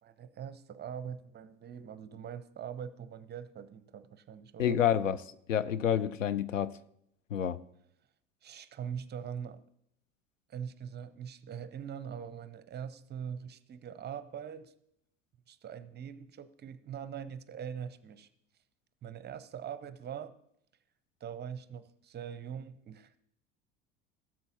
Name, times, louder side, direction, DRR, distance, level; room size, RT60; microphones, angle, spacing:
voice 1, 0.0-4.8 8.4-9.6 10.5-14.7 15.5-18.3 19.0-20.3 21.2-23.2, right 8 dB, 25° right, 0.7 m, -42 dB
voice 2, 4.6-5.2 5.5-6.8 7.3-7.6, left 9 dB, 85° left, 0.5 m, -28 dB
17.5 x 7.5 x 2.8 m
figure-of-eight pair, 65°, 37 cm